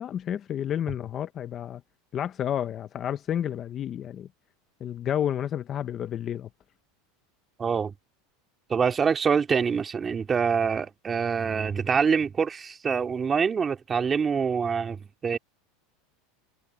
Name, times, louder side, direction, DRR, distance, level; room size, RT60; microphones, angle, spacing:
voice 1, 0.0-1.8 2.1-4.3 4.8-6.5, left 10 dB, 30° left, 0.7 m, -30 dB
voice 2, 7.6-7.9 8.7-15.4, right 6 dB, 20° right, 2.4 m, -25 dB
supercardioid pair, 155°, 0 cm